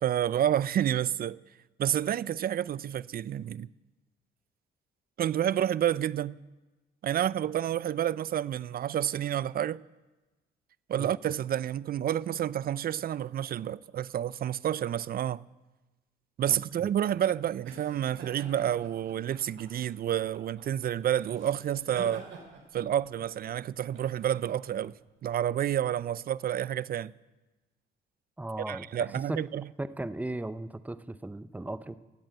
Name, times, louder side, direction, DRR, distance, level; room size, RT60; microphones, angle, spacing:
voice 1, 0.0-1.4 1.8-3.7 5.2-6.4 7.0-9.8 10.9-15.4 16.4-22.3 22.7-24.9 25.2-27.1 28.7-29.6, right 10 dB, 50° right, 0.4 m, -29 dB
voice 2, 16.5-17.1 28.4-28.9 29.3-29.4 29.8-32.0, right 2 dB, 10° right, 0.7 m, -37 dB
sound 1, 16.7-25.8, right 4 dB, 75° right, 3.5 m, -49 dB
16.5 x 8.7 x 7.8 m
cardioid pair, 90°, 20 cm